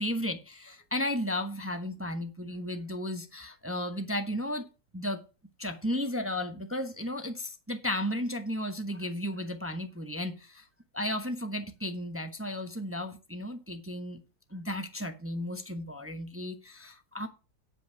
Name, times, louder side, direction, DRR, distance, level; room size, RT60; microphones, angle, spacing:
voice 1, 0.0-4.7 4.9-5.2 5.6-10.7 10.9-14.2 14.5-17.3, left 1 dB, 15° right, 0.5 m, -34 dB
10.0 x 5.5 x 5.7 m
omnidirectional pair, 1.9 m